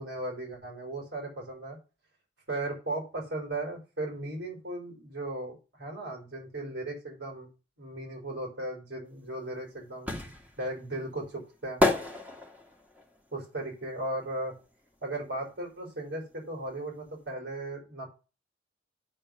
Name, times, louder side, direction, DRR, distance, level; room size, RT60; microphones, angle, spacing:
voice 1, 0.0-1.8 2.5-7.5 7.8-10.1 10.6-11.8 13.3-14.5 15.0-18.1, right 2 dB, 65° right, -1 dB, 5.1 m, -36 dB
sound 1, 9.2-15.0 15.3-16.9 17.2-17.3, left 2 dB, 10° right, 2.0 m, -31 dB
9.1 x 4.5 x 7.2 m, 0.32 s
head